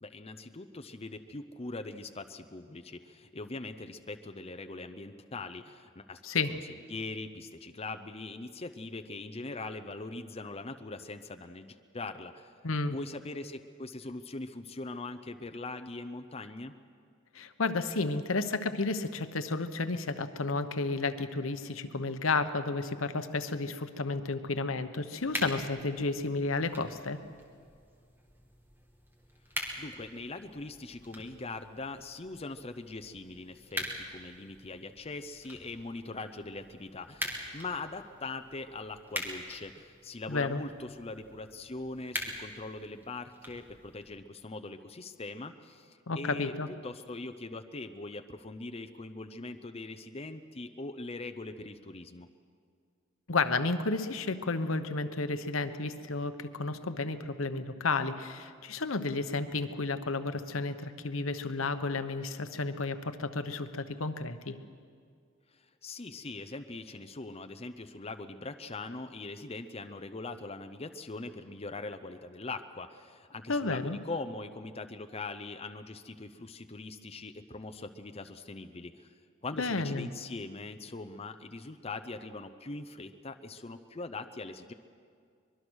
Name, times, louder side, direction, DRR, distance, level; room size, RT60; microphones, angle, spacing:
voice 1, 0.0-6.2 6.5-6.6 6.9-12.5 12.9-16.7 29.8-46.5 46.8-52.3 65.5-79.1 79.4-84.7, left 3 dB, 30° left, 7 dB, 0.7 m, -41 dB
voice 2, 12.6-13.0 17.3-27.2 40.3-40.6 46.1-46.7 53.3-64.6 73.5-74.0 79.6-80.1, left 3 dB, 75° left, 10 dB, 1.0 m, -32 dB
sound 1, 25.2-44.2, equal, 10° right, 2.6 m, -44 dB
24.0 x 21.5 x 6.3 m, 2.2 s
head